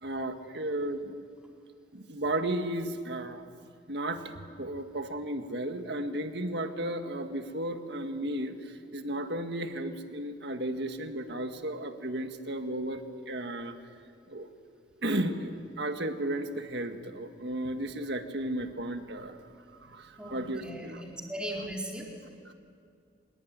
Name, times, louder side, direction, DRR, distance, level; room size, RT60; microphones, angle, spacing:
voice 1, 0.0-1.2 1.9-3.5 3.9-13.8 14.3-14.5 15.0-19.4 19.8-21.0 22.5-22.6, right 1 dB, 60° right, 6 dB, 1.8 m, -34 dB
voice 2, 20.2-22.1, equal, 5° right, -2 dB, 4.0 m, -38 dB
25.0 x 22.0 x 9.5 m, 2.4 s
head